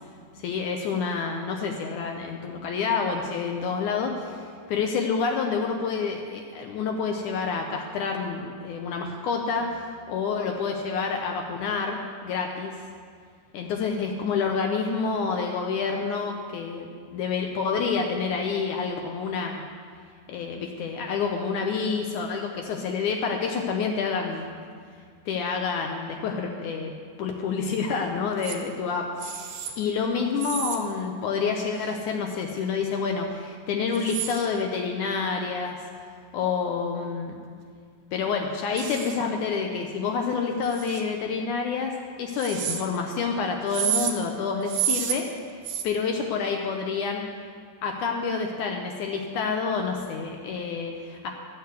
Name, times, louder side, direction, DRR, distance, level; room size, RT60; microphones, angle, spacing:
voice 1, 0.4-12.8 13.5-19.6 20.3-24.5 25.3-26.9 27.2-35.8 36.3-37.4 38.1-45.3 45.8-47.2 47.8-51.3, left 5 dB, 75° left, 2 dB, 2.1 m, -28 dB
sound 1, 28.4-28.6 29.2-29.7 30.4-30.8 31.8-31.9 33.9-34.5 38.8-39.2 40.6-41.0 42.3-42.8 43.7-44.1 44.6-45.2 45.6-45.8, right 9 dB, 75° right, 2.4 m, -30 dB
13.0 x 6.7 x 8.1 m, 2.1 s
omnidirectional pair, 3.9 m